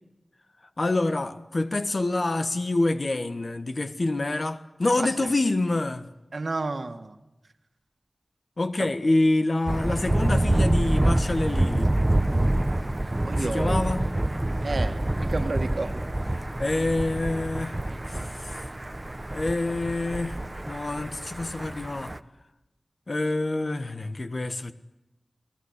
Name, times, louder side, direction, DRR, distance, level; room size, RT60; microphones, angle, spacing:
voice 1, 0.8-6.1 8.6-11.9 13.4-14.1 16.6-17.8 18.4-18.6 19.3-20.4 20.7-22.1 23.1-24.7, left 2 dB, 55° left, 1.5 m, -26 dB
voice 2, 6.3-7.2 13.2-13.8 14.6-16.0, right 3 dB, 70° right, 2.0 m, -31 dB
Thunder, 9.7-22.2, right 1 dB, 25° right, 1.0 m, -26 dB
29.5 x 19.5 x 8.3 m
wide cardioid pair, 70°, 0 cm